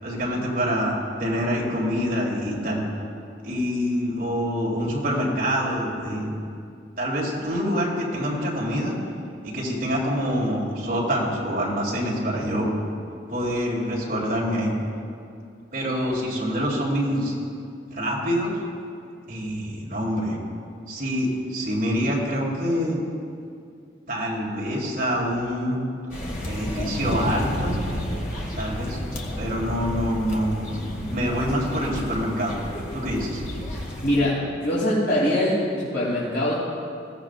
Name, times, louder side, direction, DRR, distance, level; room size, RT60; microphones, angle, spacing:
voice 1, 0.0-2.8 3.4-6.3 7.0-8.9 9.4-12.7 13.3-14.7 15.7-17.3 17.9-18.6 19.3-20.4 20.9-23.0 24.1-25.8 26.4-27.8 28.6-29.0 29.4-32.6 32.9-33.4, equal, 45° right, -5 dB, 3.6 m, -26 dB
sound 1, 26.1-34.2, equal, 45° left, 2.0 m, -31 dB
voice 2, 33.7-36.5, left 1 dB, 60° left, -10 dB, 3.4 m, -23 dB
21.5 x 16.0 x 2.6 m, 2.4 s
head